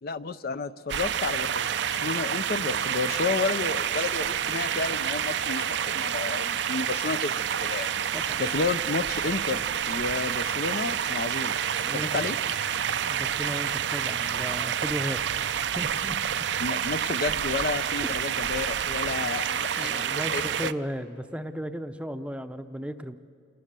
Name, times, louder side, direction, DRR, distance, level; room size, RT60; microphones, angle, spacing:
voice 1, 0.0-1.7 2.0-7.9 8.4-11.5 11.9-12.4 16.6-20.7, left 4 dB, 55° left, 13 dB, 0.5 m, -31 dB
sound 1, 0.9-20.7, right 8 dB, 70° right, 0.5 m, -28 dB
voice 2, 11.8-12.3 13.0-15.2 15.7-16.2 18.0-18.1 19.8-23.2, equal, 5° right, 8 dB, 0.6 m, -35 dB
28.5 x 19.0 x 6.8 m, 2.3 s
head